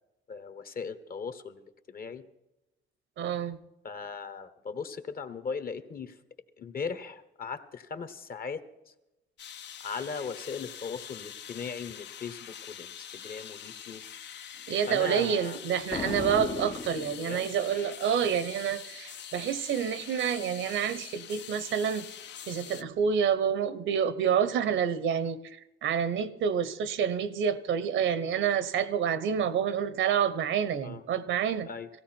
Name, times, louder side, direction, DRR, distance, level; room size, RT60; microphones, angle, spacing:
voice 1, 0.3-2.2 3.8-6.1 6.6-8.6 9.8-14.0 14.9-15.6 17.2-17.5 22.7-22.9 30.8-31.0 31.7-31.9, left 5 dB, 45° left, 12 dB, 1.2 m, -38 dB
voice 2, 3.2-3.6 14.7-22.1 22.5-31.7, right 8 dB, 75° right, 15 dB, 0.9 m, -28 dB
sound 1, 9.4-22.8, left 9 dB, 65° left, 0.7 m, -45 dB
Boom, 15.9-17.7, left 5 dB, 30° left, 0.5 m, -36 dB
17.5 x 15.5 x 4.5 m, 0.95 s
cardioid pair, 90°, 20 cm